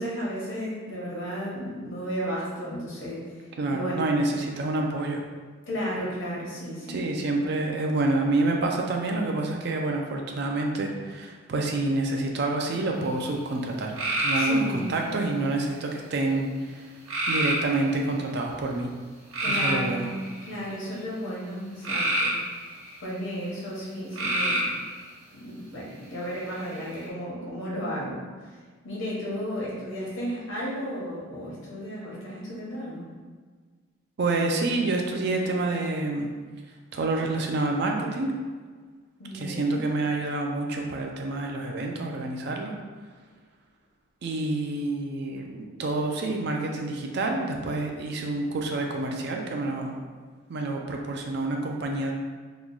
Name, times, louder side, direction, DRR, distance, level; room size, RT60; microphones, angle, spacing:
voice 1, 0.0-4.2 5.7-7.0 14.4-14.9 19.4-20.1 20.4-22.3 23.0-24.8 25.3-28.2 28.5-28.6 28.8-33.0 39.2-39.9, equal, 65° left, -6 dB, 1.0 m, -34 dB
voice 2, 3.6-5.2 6.9-16.5 16.7-16.8 17.3-18.9 19.5-20.1 34.2-36.3 36.9-38.3 39.3-42.7 44.2-50.0 50.5-52.1, right 2 dB, 50° right, 2 dB, 0.4 m, -28 dB
sound 1, 14.0-15.0 17.1-17.9 19.3-20.6 21.8-23.0 24.1-24.8 26.5-27.0, right 1 dB, 75° right, 0.7 m, -27 dB
3.0 x 2.2 x 3.8 m, 1.5 s
head